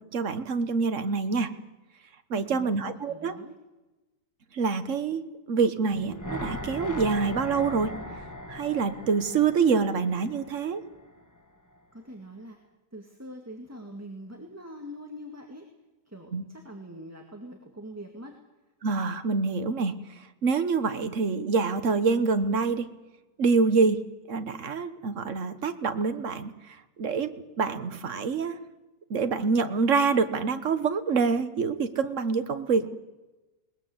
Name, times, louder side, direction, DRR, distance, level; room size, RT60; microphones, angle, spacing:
voice 1, 0.1-1.5 2.3-3.3 4.5-5.2 5.5-7.9 8.5-10.8 16.3-16.4 18.8-20.0 20.4-22.9 23.4-24.0 24.3-27.3 27.6-28.6 29.1-33.0, right 5 dB, 50° right, 10 dB, 1.5 m, -26 dB
voice 2, 2.3-3.6 11.9-12.6 12.9-15.7 16.1-18.4, equal, 10° right, 2 dB, 2.0 m, -43 dB
sound 1, 5.9-11.1 11.4-11.5, left 1 dB, 10° left, 1.3 m, -38 dB
21.0 x 20.0 x 7.9 m, 1.1 s
omnidirectional pair, 1.8 m